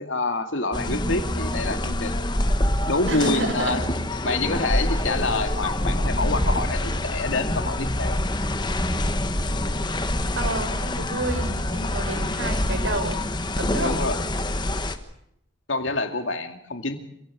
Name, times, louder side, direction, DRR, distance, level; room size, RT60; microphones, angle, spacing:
voice 1, 0.0-2.3 2.9-3.8 4.2-8.2 13.8-14.2 15.7-17.0, left 2 dB, 75° left, 6 dB, 2.5 m, -27 dB
sound 1, 0.7-15.0, left 1 dB, 20° left, 1.3 m, -26 dB
voice 2, 3.1-3.8 10.4-13.2 13.6-13.9, right 1 dB, 75° right, 6 dB, 5.3 m, -29 dB
26.5 x 16.5 x 8.5 m, 0.77 s
head